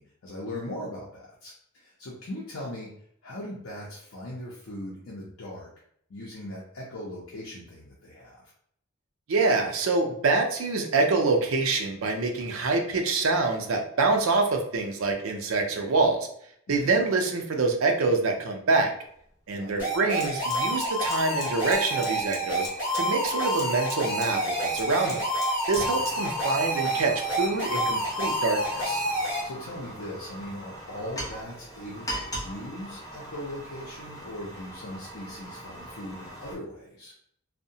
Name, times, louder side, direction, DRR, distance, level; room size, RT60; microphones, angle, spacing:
voice 1, 0.0-2.9 3.2-5.7 6.1-8.5 16.7-16.9 19.5-19.8 25.7-25.9 29.4-37.1, left 1 dB, 70° left, -4 dB, 0.6 m, -39 dB
voice 2, 9.3-16.3 16.7-18.9 19.5-22.7 22.9-25.2 25.7-29.0, right 3 dB, 75° right, 3 dB, 0.5 m, -26 dB
Fire, 19.1-19.2 19.5-36.5, equal, 15° left, 0.7 m, -41 dB
sound 1, 19.8-29.4, equal, 10° right, 1.0 m, -28 dB
2.7 x 2.1 x 2.7 m, 0.67 s
head